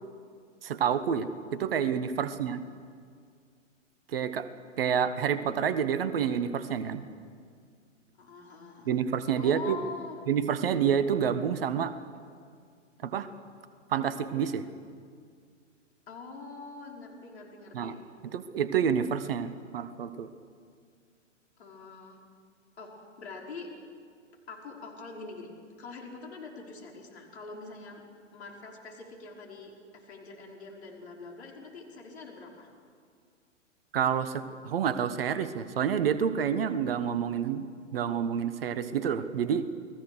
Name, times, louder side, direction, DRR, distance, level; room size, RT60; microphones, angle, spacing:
voice 1, 0.6-2.6 4.1-4.5 4.8-7.0 8.9-9.8 10.3-11.9 13.0-13.3 13.9-14.7 17.7-18.0 18.2-20.3 33.9-37.7 37.9-39.7, right 8 dB, 50° right, 13 dB, 1.2 m, -28 dB
voice 2, 8.2-9.0 9.4-10.3 16.1-18.0 21.6-22.2 22.8-23.7 24.5-25.5 25.8-28.0 28.3-32.7, left 4 dB, 55° left, 0 dB, 5.4 m, -44 dB
29.5 x 20.0 x 6.5 m, 2.1 s
figure-of-eight pair, 110°, 38 cm